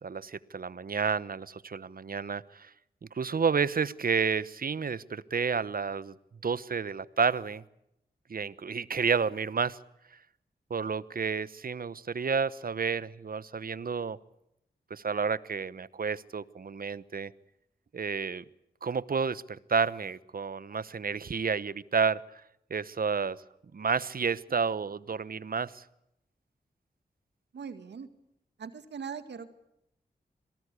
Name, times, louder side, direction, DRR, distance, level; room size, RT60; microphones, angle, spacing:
voice 1, 0.0-2.7 3.1-6.1 6.4-7.6 8.3-9.8 10.7-14.2 14.9-17.3 17.9-18.4 18.8-22.2 22.7-23.4 23.7-25.8, right 5 dB, 55° right, 18 dB, 1.0 m, -30 dB
voice 2, 27.5-28.1 28.6-29.5, right 6 dB, 90° right, 10 dB, 2.0 m, -40 dB
27.0 x 18.5 x 8.3 m, 0.81 s
cardioid pair, 50°, 17 cm